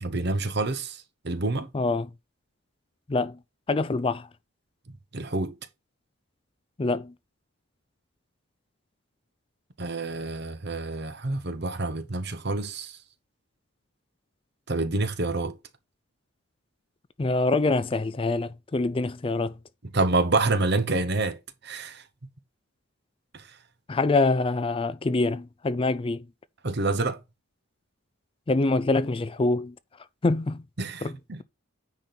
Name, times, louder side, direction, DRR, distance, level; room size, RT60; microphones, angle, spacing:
voice 1, 0.0-1.0 1.2-1.7 5.1-5.5 9.8-12.9 14.7-15.5 19.9-21.4 21.6-22.0 26.6-27.2 30.8-31.0 31.3-31.4, right 3 dB, 50° right, 1.0 m, -27 dB
voice 2, 1.7-2.1 3.1-3.4 3.7-4.3 6.8-7.1 17.2-19.5 23.9-26.2 28.5-29.7 30.2-30.6 31.0-31.2, left 3 dB, 25° left, 0.4 m, -25 dB
9.7 x 4.3 x 4.0 m
head